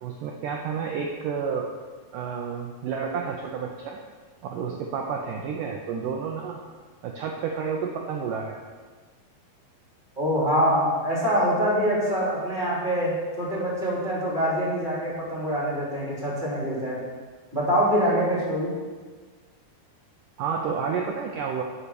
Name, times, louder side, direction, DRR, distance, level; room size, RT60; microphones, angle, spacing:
voice 1, 0.0-1.7 2.1-4.0 4.4-6.6 7.0-8.6 20.4-21.6, right 6 dB, 85° right, 1 dB, 1.8 m, -30 dB
voice 2, 10.2-17.0 17.5-18.7, equal, 15° right, -6 dB, 2.6 m, -24 dB
10.5 x 5.7 x 6.8 m, 1.5 s
omnidirectional pair, 4.8 m